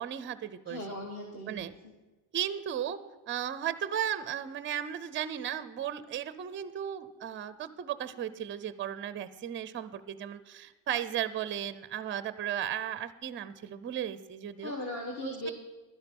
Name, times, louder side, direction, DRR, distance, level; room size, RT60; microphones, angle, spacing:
voice 1, 0.0-0.8 1.5-1.7 2.3-3.0 3.3-14.7 15.2-15.5, right 10 dB, 25° right, 15 dB, 0.5 m, -35 dB
voice 2, 0.6-1.9 14.6-15.5, left 1 dB, 35° left, 1 dB, 1.4 m, -38 dB
12.0 x 10.0 x 5.3 m, 1.2 s
cardioid pair, 145°, 46 cm